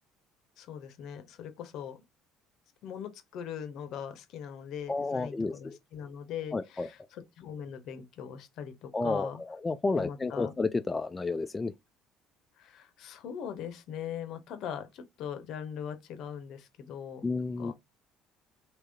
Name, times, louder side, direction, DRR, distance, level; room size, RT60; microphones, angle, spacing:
voice 1, 0.6-2.0 2.8-9.4 9.9-10.5 12.6-17.3 17.6-17.7, left 8 dB, 65° left, 0.7 m, -41 dB
voice 2, 4.9-5.8 6.5-6.9 8.9-11.7 17.2-17.7, left 3 dB, 25° left, 0.3 m, -31 dB
3.4 x 2.8 x 2.7 m
hypercardioid pair, 60°, 0 cm